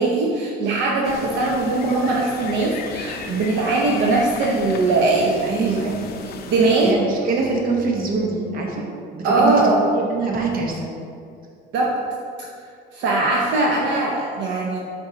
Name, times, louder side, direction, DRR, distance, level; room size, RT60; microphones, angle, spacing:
voice 1, 0.0-5.9 6.5-7.0 9.2-9.8 11.7-11.9 12.9-14.8, right 3 dB, 60° right, -3 dB, 0.9 m, -20 dB
sound 1, 1.0-6.9, left 5 dB, 50° left, 0.6 m, -35 dB
voice 2, 5.4-6.1 6.8-8.8 9.1-9.5 10.0-10.8, right 4 dB, 45° right, 0 dB, 1.2 m, -24 dB
7.3 x 4.4 x 4.0 m, 2.3 s
cardioid pair, 140°, 21 cm